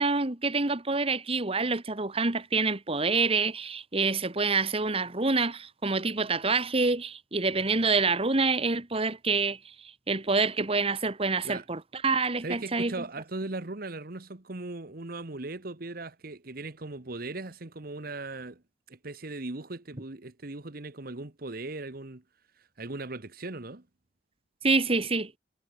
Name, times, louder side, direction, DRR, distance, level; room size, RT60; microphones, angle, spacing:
voice 1, 0.0-9.6 10.1-12.9 24.6-25.3, right 3 dB, 35° right, 1.6 m, -27 dB
voice 2, 12.4-18.6 18.9-22.2 22.8-23.8, right 2 dB, 55° right, 1.4 m, -38 dB
head